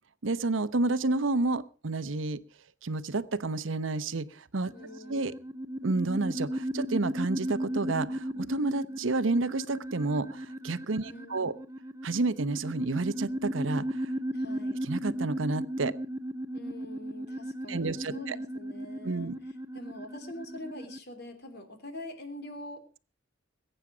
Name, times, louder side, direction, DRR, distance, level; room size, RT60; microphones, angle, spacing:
voice 1, 0.2-2.4 2.8-4.7 5.1-5.3 5.8-11.5 12.0-14.1 14.9-15.9 17.7-18.4 19.0-19.3, right 3 dB, 80° right, 14 dB, 0.9 m, -30 dB
sound 1, 4.6-21.0, right 1 dB, 15° right, 0.6 m, -36 dB
voice 2, 4.7-5.2 11.0-11.6 14.3-14.8 16.5-23.0, left 1 dB, 55° left, 7 dB, 3.2 m, -45 dB
21.5 x 9.0 x 5.0 m, 0.38 s
head